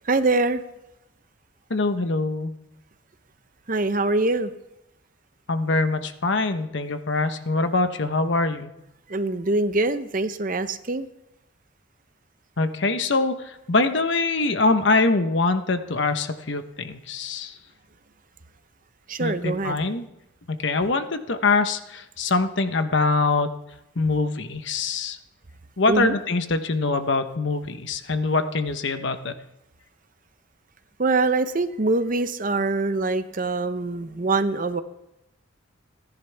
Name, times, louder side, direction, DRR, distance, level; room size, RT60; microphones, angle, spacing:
voice 1, 0.1-0.6 3.7-4.5 9.1-11.1 19.1-19.8 25.9-26.2 31.0-34.8, right 3 dB, 40° right, 11 dB, 0.7 m, -24 dB
voice 2, 1.7-2.5 5.5-8.7 12.6-17.5 19.2-20.0 20.5-23.5 24.0-25.2 25.8-29.3, left 3 dB, 65° left, 9 dB, 1.0 m, -24 dB
28.5 x 10.5 x 3.4 m, 0.90 s
head